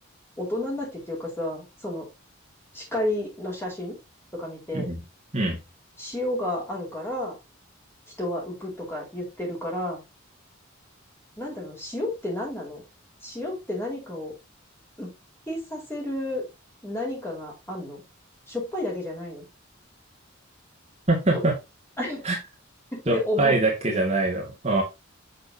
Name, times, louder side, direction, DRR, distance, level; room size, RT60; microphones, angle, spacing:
voice 1, 0.4-2.1 2.7-4.0 4.3-4.9 6.0-7.4 8.2-10.0 11.4-12.8 13.2-14.3 15.0-15.1 15.5-16.4 16.8-18.0 18.5-19.4 21.3-21.4 22.0-22.2 22.9-23.6 23.9-24.0, left 1 dB, 10° left, -2 dB, 4.4 m, -31 dB
voice 2, 21.1-21.5 22.2-22.4 23.1-24.8, right 2 dB, 30° right, -1 dB, 2.3 m, -23 dB
7.7 x 6.6 x 2.8 m, 0.24 s
head